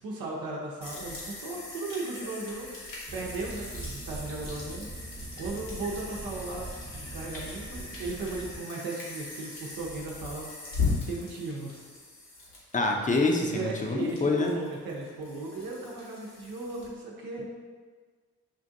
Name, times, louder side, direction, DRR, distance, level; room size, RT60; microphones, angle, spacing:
voice 1, 0.0-6.7 6.9-10.5 11.0-11.8 13.5-17.4, right 3 dB, 75° right, -3 dB, 0.7 m, -36 dB
sound 1, 0.8-16.9, left 4 dB, 70° left, 1.2 m, -39 dB
sound 2, 3.1-8.6, right 2 dB, 35° right, 0.9 m, -42 dB
voice 2, 12.7-14.5, left 3 dB, 20° left, 1 dB, 0.7 m, -26 dB
5.3 x 2.5 x 2.6 m, 1.5 s
hypercardioid pair, 45°, 35 cm